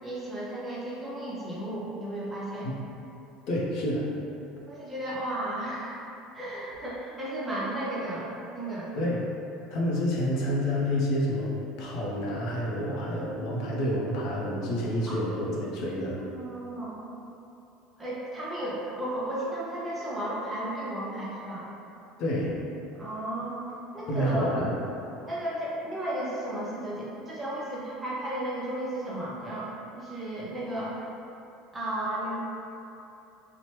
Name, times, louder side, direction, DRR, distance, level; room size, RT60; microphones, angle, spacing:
voice 1, 0.0-2.7 4.7-6.0 6.3-8.9 15.1-15.2 16.4-17.0 18.0-21.7 23.0-23.7 23.9-24.5 25.2-31.0 31.7-32.4, right 1 dB, 15° right, -8 dB, 0.6 m, -34 dB
voice 2, 3.5-4.1 8.9-9.2 9.7-16.2 22.2-22.5 24.1-24.7, equal, 60° left, -4 dB, 0.6 m, -28 dB
2.9 x 2.0 x 3.0 m, 2.7 s
cardioid pair, 135°, 0 cm